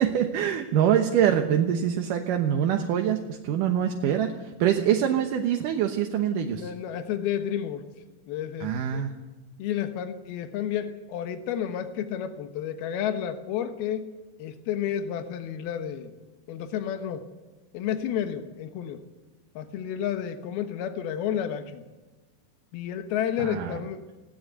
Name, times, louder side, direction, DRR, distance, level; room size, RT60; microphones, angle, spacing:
voice 1, 0.0-6.7 8.6-9.1 23.4-23.8, right 9 dB, 70° right, 5 dB, 2.5 m, -24 dB
voice 2, 6.6-7.8 8.3-9.0 9.6-14.1 14.4-16.1 16.5-17.3 17.7-19.0 19.6-21.8 22.7-24.0, left 9 dB, 85° left, 8 dB, 3.1 m, -31 dB
19.0 x 16.5 x 8.1 m, 1.2 s
omnidirectional pair, 4.3 m